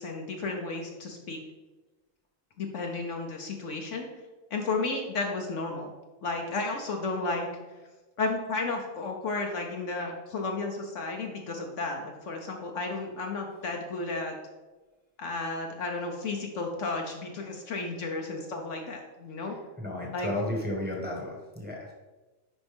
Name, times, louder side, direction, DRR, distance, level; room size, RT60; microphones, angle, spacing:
voice 1, 0.0-1.4 2.6-4.0 4.5-5.9 6.2-7.5 8.2-14.3 15.2-19.6 20.1-20.4, left 3 dB, 65° left, 2 dB, 1.1 m, -33 dB
voice 2, 19.8-21.9, left 1 dB, 5° right, -2 dB, 1.3 m, -33 dB
10.5 x 4.6 x 3.5 m, 1.2 s
omnidirectional pair, 1.5 m